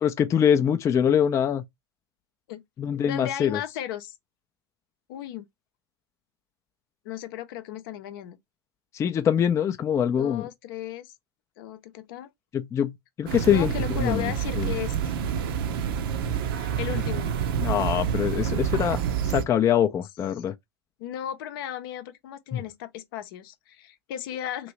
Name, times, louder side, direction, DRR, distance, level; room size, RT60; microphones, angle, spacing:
voice 1, 0.0-1.6 2.8-3.6 8.9-10.5 12.5-13.7 14.0-14.7 17.6-19.0 19.3-20.5 22.5-22.6, left 9 dB, 20° left, 0.4 m, -24 dB
voice 2, 3.1-4.1 5.1-5.5 7.0-8.4 10.2-11.1 11.6-12.3 13.5-15.1 16.6-17.3 21.0-24.7, left 11 dB, 60° left, 0.6 m, -35 dB
sound 1, 13.3-19.4, right 8 dB, 60° right, 0.7 m, -28 dB
3.0 x 2.6 x 3.0 m
hypercardioid pair, 100°, 13 cm